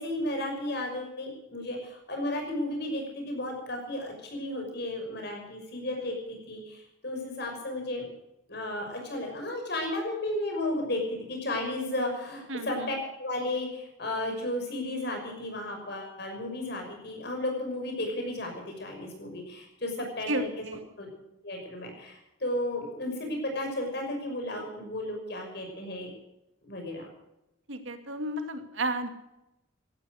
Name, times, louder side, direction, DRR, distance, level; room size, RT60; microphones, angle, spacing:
voice 1, 0.0-8.1 8.5-20.6 21.0-21.1 21.4-26.1 26.7-27.1, left 1 dB, 55° left, 2 dB, 6.0 m, -34 dB
voice 2, 12.5-12.9 20.3-20.8 27.7-29.1, right 1 dB, 75° right, 7 dB, 2.2 m, -32 dB
16.5 x 13.0 x 6.4 m, 0.92 s
head